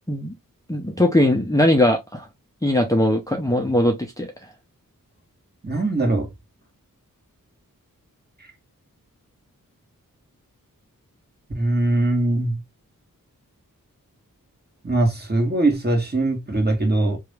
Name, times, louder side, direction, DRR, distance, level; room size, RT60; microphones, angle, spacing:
voice 1, 0.7-2.3 2.6-4.3, left 1 dB, 10° left, 0.8 m, -20 dB
voice 2, 5.6-6.3 11.5-12.6 14.8-17.2, right 2 dB, 30° right, 1.6 m, -21 dB
3.0 x 2.7 x 3.3 m
cardioid pair, 50°, 34 cm